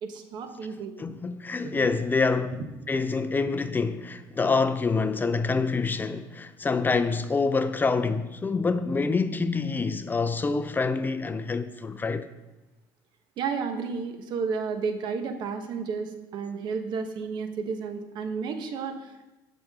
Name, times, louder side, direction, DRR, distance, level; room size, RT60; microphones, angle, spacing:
voice 1, 0.0-1.1 1.6-1.8 13.4-19.2, right 5 dB, 60° right, 1.3 m, -32 dB
voice 2, 1.0-12.3, left 4 dB, 20° left, 0.5 m, -26 dB
16.0 x 6.1 x 3.7 m
supercardioid pair, 95°, 8 cm